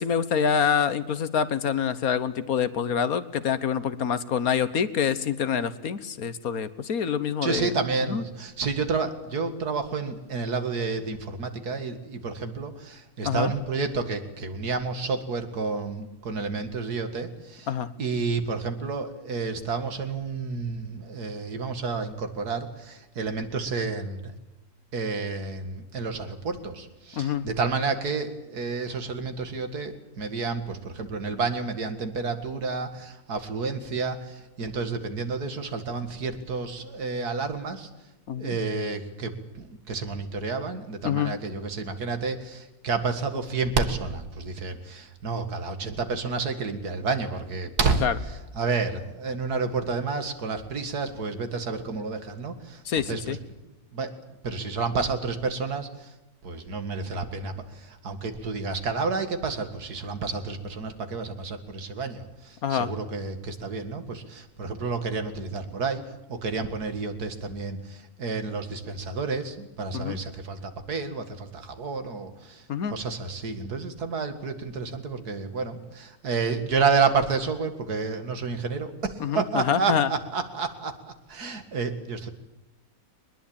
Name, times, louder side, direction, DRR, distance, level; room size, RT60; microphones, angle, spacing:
voice 1, 0.0-7.7 8.1-8.2 13.2-13.5 17.7-17.9 27.2-27.5 38.3-38.6 41.0-41.3 48.0-48.1 52.9-53.4 62.6-62.9 69.9-70.2 72.7-73.0 79.2-80.1, left 7 dB, 70° left, 14 dB, 1.6 m, -26 dB
voice 2, 7.4-17.7 18.0-24.3 24.9-37.9 38.4-48.1 48.6-52.8 53.1-53.4 53.9-54.1 54.4-56.1 56.4-72.6 72.9-81.0 81.3-82.3, right 4 dB, 85° right, 8 dB, 2.5 m, -30 dB
22.5 x 20.5 x 8.8 m, 0.98 s
omnidirectional pair, 1.6 m